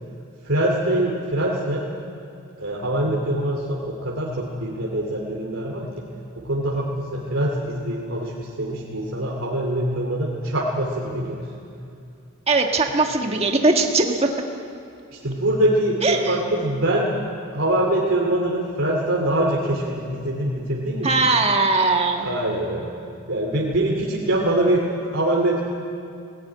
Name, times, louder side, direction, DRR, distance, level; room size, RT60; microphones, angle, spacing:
voice 1, 0.4-1.9 2.6-6.1 6.4-11.5 15.2-17.1 17.5-21.1 22.2-22.9 23.3-25.6, right 1 dB, 70° right, -3 dB, 2.6 m, -23 dB
voice 2, 12.5-14.3 16.0-16.3 21.0-22.3, right 3 dB, 30° right, 3 dB, 1.5 m, -20 dB
18.0 x 18.0 x 9.6 m, 2.5 s
head